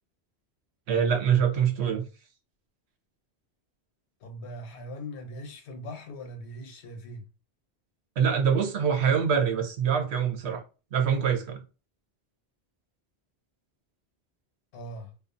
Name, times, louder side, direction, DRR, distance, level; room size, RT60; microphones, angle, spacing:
voice 1, 0.9-2.1 8.2-10.6 10.9-11.6, right 7 dB, 80° right, 0.9 m, -24 dB
voice 2, 4.2-7.2 14.7-15.1, equal, 85° left, 1.0 m, -40 dB
2.4 x 2.3 x 2.5 m
omnidirectional pair, 1.1 m